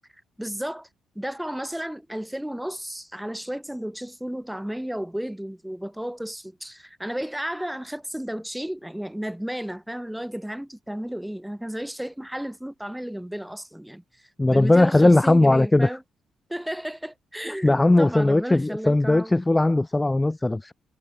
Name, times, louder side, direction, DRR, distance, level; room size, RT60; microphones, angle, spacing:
voice 1, 0.4-0.9 1.2-16.0 16.5-19.3, equal, 5° right, 1.9 m, -33 dB
voice 2, 14.4-15.9 17.6-20.7, left 2 dB, 15° left, 0.4 m, -19 dB
cardioid pair, 90°, 0 cm